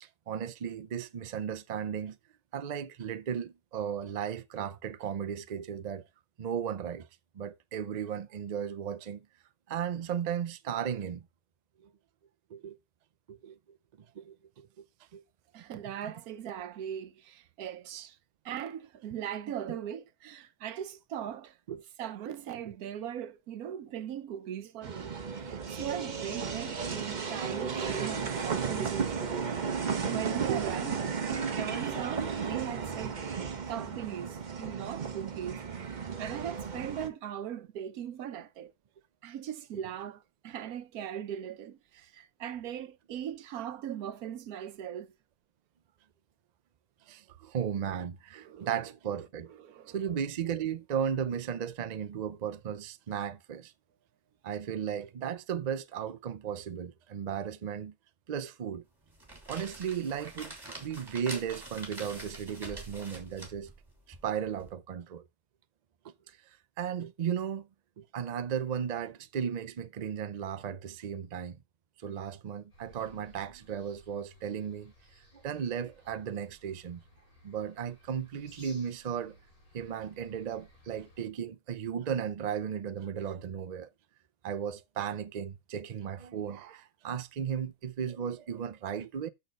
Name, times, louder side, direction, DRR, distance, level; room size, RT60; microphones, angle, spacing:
voice 1, 0.0-2.2 2.5-6.0 6.4-7.1 7.3-9.3 9.7-11.3 11.8-11.9 12.5-12.8 13.3-13.8 14.1-14.7 15.1-15.2 19.7-19.8 21.7-21.8 22.7-22.8 30.5-30.7 39.7-39.8 47.1-49.5 49.9-53.7 54.4-57.9 58.3-58.8 59.5-63.7 64.1-65.2 66.0-66.4 66.8-67.7 68.0-71.6 72.0-74.9 75.3-77.0 77.4-79.4 79.7-83.9 84.4-89.3, right 8 dB, 55° right, 0.4 m, -35 dB
voice 2, 15.5-18.2 18.4-21.6 22.0-29.5 30.0-33.2 33.7-38.7 39.2-45.1 48.4-48.7 49.5-50.0, right 10 dB, 90° right, 1.2 m, -39 dB
sound 1, 24.8-37.1, right 6 dB, 40° right, 0.9 m, -34 dB
sound 2, 59.0-64.7, right 1 dB, 15° right, 2.6 m, -46 dB
sound 3, 72.7-81.3, equal, 80° left, 4.9 m, -59 dB
6.7 x 6.5 x 5.1 m
omnidirectional pair, 1.5 m